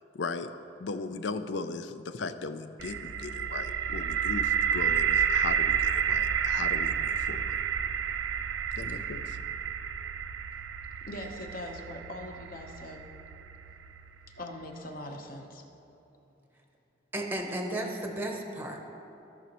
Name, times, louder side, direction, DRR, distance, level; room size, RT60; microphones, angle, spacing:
voice 1, 0.1-0.5 0.8-7.6 8.8-9.4, left 4 dB, 70° left, 10 dB, 0.5 m, -37 dB
sound 1, 2.8-14.6, right 8 dB, 80° right, 0.4 m, -30 dB
voice 2, 11.1-13.1 14.4-15.6, left 1 dB, 50° left, 3 dB, 1.0 m, -41 dB
voice 3, 17.1-18.9, right 1 dB, 10° right, 2 dB, 0.8 m, -34 dB
16.5 x 6.1 x 3.0 m, 2.9 s
head